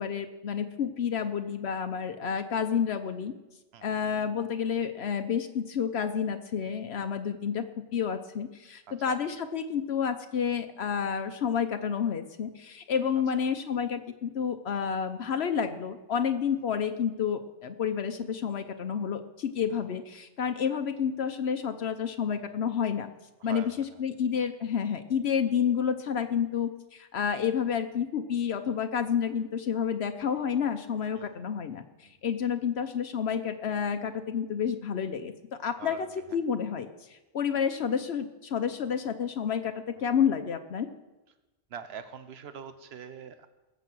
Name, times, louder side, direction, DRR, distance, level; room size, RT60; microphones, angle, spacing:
voice 1, 0.0-3.3 3.8-7.6 7.9-23.1 23.4-23.7 24.0-35.3 35.6-39.7 40.0-40.9, left 7 dB, 80° left, 7 dB, 1.1 m, -30 dB
voice 2, 8.9-9.2 19.7-19.8 23.4-24.0 31.2-31.3 32.0-32.1 35.8-36.1 40.0-40.1 41.7-43.5, right 7 dB, 75° right, 10 dB, 1.1 m, -44 dB
20.5 x 8.2 x 6.2 m, 1.1 s
omnidirectional pair, 1.1 m